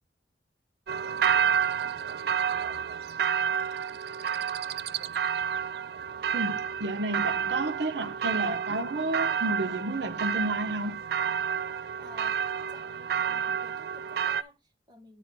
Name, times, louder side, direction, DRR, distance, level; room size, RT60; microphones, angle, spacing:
sound 1, 0.9-14.4, right 7 dB, 60° right, 0.3 m, -30 dB
voice 1, 6.3-11.0, right 2 dB, 80° right, 0.7 m, -31 dB
voice 2, 12.0-12.4 12.7-15.2, equal, 25° right, 2.1 m, -52 dB
9.1 x 4.0 x 4.5 m
head